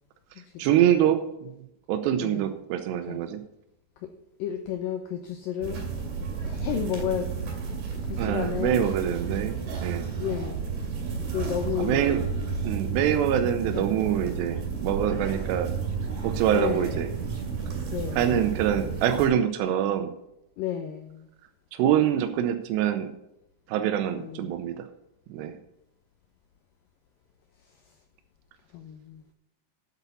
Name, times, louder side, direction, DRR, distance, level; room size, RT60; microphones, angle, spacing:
voice 1, 0.6-1.5 1.9-3.4 8.2-9.5 9.8-10.0 11.8-12.3 12.6-15.7 16.2-17.1 18.2-20.1 21.7-23.1 23.7-24.9 25.3-25.5, right 10 dB, 90° right, 7 dB, 2.9 m, -25 dB
voice 2, 2.2-2.6 3.1-3.2 4.0-4.1 4.4-5.9 6.4-7.3 8.0-8.8 9.9-10.7 11.3-12.1 13.7-13.9 16.5-17.0 17.9-18.4 20.6-21.3 24.1-24.5 28.7-29.2, left 9 dB, 80° left, 6 dB, 2.1 m, -32 dB
sound 1, 5.6-19.3, right 5 dB, 60° right, 4.0 m, -32 dB
8.3 x 8.2 x 7.0 m, 0.84 s
omnidirectional pair, 4.9 m